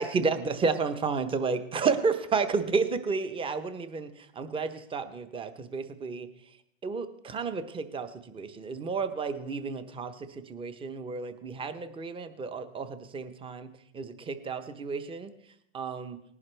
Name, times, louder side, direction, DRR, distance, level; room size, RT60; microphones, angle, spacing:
voice 1, 0.0-4.1 4.4-6.3 6.8-13.7 13.9-15.3 15.7-16.2, right 4 dB, 15° right, 11 dB, 0.8 m, -31 dB
19.0 x 10.5 x 3.3 m, 0.76 s
hypercardioid pair, 130°, 36 cm